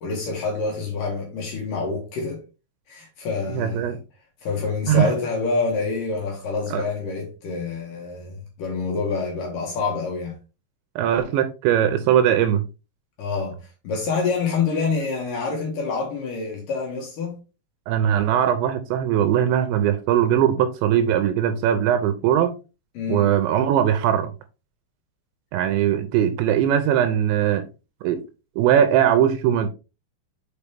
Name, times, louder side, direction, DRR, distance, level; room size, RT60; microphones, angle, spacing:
voice 1, 0.0-2.4 2.9-4.0 4.4-10.3 13.2-13.6 13.8-17.4 18.1-18.4 22.9-23.3, left 4 dB, 55° left, 2.7 m, -27 dB
voice 2, 3.5-4.0 4.9-5.1 6.7-6.8 11.0-12.7 17.9-22.6 23.1-24.3 25.5-27.7 28.0-28.2 28.6-29.7, right 10 dB, 80° right, 2.8 m, -20 dB
6.9 x 5.2 x 3.4 m
omnidirectional pair, 5.5 m